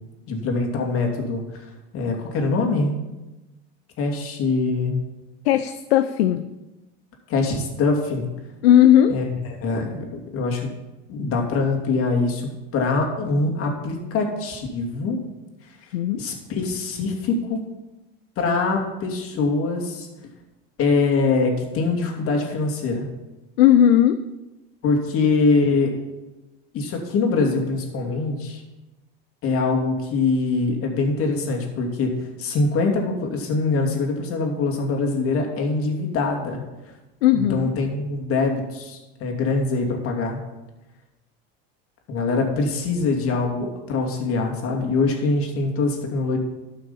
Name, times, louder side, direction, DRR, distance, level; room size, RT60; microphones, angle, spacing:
voice 1, 0.3-1.6 1.9-3.0 4.0-5.0 7.3-8.3 9.1-9.3 9.6-10.7 11.1-15.2 15.8-17.6 18.4-20.1 20.8-23.1 24.8-26.0 26.7-28.6 29.4-36.6 37.3-40.4 42.1-46.4, left 3 dB, 45° left, 2 dB, 2.6 m, -23 dB
voice 2, 5.4-6.4 8.6-9.2 15.9-16.2 23.6-24.2 37.2-37.7, left 11 dB, 85° left, 10 dB, 0.6 m, -16 dB
12.5 x 5.9 x 5.6 m, 1.0 s
supercardioid pair, 105°, 30 cm